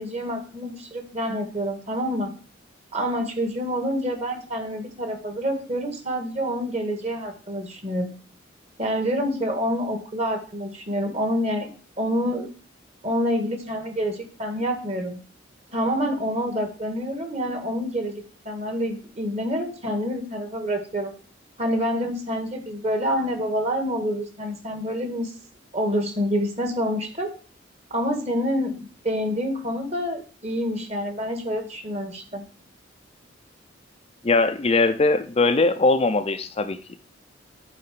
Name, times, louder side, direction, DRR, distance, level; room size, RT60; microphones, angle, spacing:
voice 1, 0.0-2.3 2.9-8.2 8.8-11.7 12.0-12.5 13.0-15.2 15.7-21.1 21.6-25.3 25.7-27.3 27.9-28.8 29.0-32.4, equal, 35° right, 5 dB, 1.7 m, -27 dB
voice 2, 34.2-37.0, left 3 dB, 30° left, 8 dB, 0.5 m, -21 dB
8.6 x 4.2 x 6.7 m, 0.39 s
head